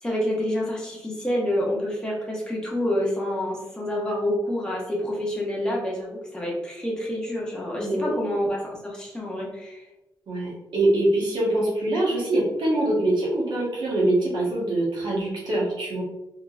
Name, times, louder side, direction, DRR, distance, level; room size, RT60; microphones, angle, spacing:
voice 1, 0.0-9.8, left 1 dB, 10° left, -4 dB, 0.9 m, -28 dB
voice 2, 7.8-8.2 10.3-16.0, right 1 dB, 75° right, -5 dB, 1.4 m, -24 dB
3.6 x 2.9 x 2.5 m, 0.96 s
wide cardioid pair, 120°, 8 cm